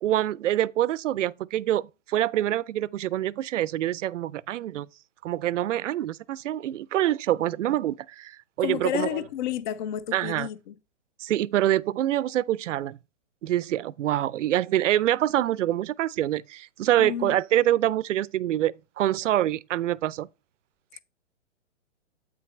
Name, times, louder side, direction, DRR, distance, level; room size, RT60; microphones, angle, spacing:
voice 1, 0.0-4.9 5.2-9.2 10.1-10.5 11.2-13.0 13.4-20.3, right 13 dB, 80° right, 0.5 m, -26 dB
voice 2, 8.6-10.7 17.0-17.4, left 11 dB, 40° left, 0.5 m, -31 dB
8.4 x 6.0 x 3.1 m
hypercardioid pair, 140°, 37 cm